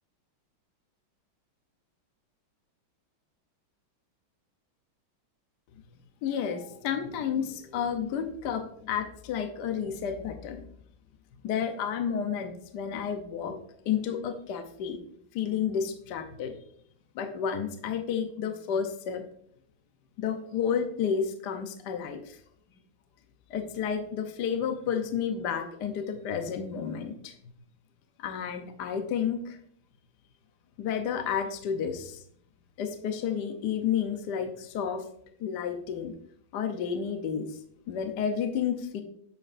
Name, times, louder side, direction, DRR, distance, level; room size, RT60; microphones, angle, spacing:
voice 1, 6.2-10.7 11.4-13.6 13.9-15.0 15.3-16.6 17.1-19.2 20.2-22.4 23.5-27.3 28.2-29.6 30.8-32.2 32.8-35.0 35.4-36.1 36.5-37.6 37.9-39.0, left 7 dB, 65° left, 6 dB, 1.1 m, -31 dB
8.7 x 6.7 x 2.5 m, 0.65 s
omnidirectional pair, 2.3 m